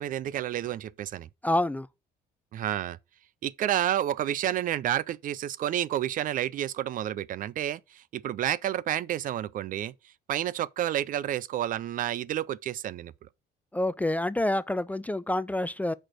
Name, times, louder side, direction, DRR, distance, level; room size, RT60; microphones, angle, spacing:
voice 1, 0.0-1.3 2.5-3.0 3.4-9.9 10.3-13.1, right 11 dB, 55° right, 0.5 m, -30 dB
voice 2, 1.4-1.9 13.7-15.9, left 1 dB, 10° left, 0.3 m, -27 dB
7.6 x 4.4 x 6.2 m
cardioid pair, 110°, 17 cm